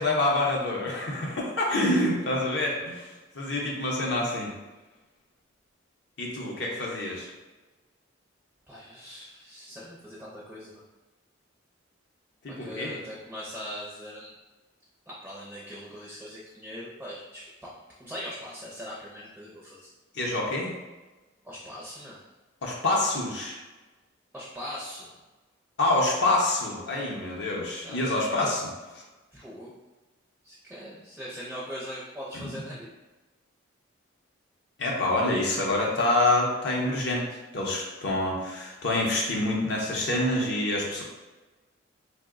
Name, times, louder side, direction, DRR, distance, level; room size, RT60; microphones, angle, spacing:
voice 1, 0.0-3.1 3.3-4.5 6.2-7.3 12.4-12.9 20.1-20.7 22.6-23.6 25.8-28.7 32.3-32.6 34.8-37.3 37.5-41.0, left 2 dB, 55° left, -2 dB, 0.5 m, -26 dB
voice 2, 8.7-10.8 12.6-14.3 15.1-17.7 18.0-19.9 21.4-22.2 24.3-25.1 27.8-28.1 29.3-29.7 30.4-32.9, equal, 5° right, -6 dB, 0.4 m, -41 dB
2.8 x 2.0 x 3.5 m, 1.2 s
head